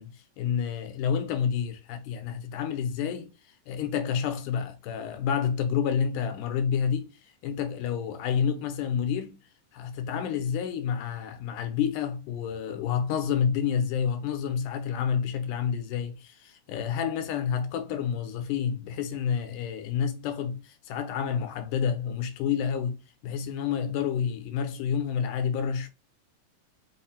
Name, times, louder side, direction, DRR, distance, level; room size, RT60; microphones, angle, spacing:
voice 1, 0.0-3.3 3.7-7.1 7.4-9.4 9.7-25.9, left 7 dB, 80° left, 2.1 m, -29 dB
5.4 x 2.1 x 4.2 m
omnidirectional pair, 3.8 m